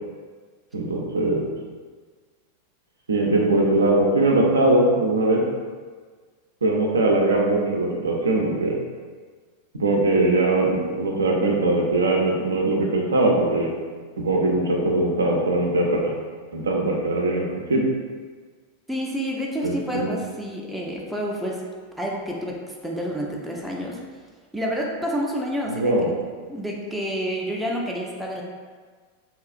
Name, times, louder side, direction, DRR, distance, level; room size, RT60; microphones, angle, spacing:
voice 1, 0.7-1.4 3.1-5.4 6.6-8.8 9.7-13.7 14.2-16.1 16.5-17.8 19.6-20.1 25.7-26.1, right 2 dB, 70° right, -1 dB, 0.4 m, -21 dB
voice 2, 18.9-21.6 22.0-24.0 24.5-25.9 26.5-28.4, equal, ahead, -3 dB, 0.4 m, -29 dB
2.8 x 2.3 x 2.5 m, 1.5 s
figure-of-eight pair, 90°, 0 cm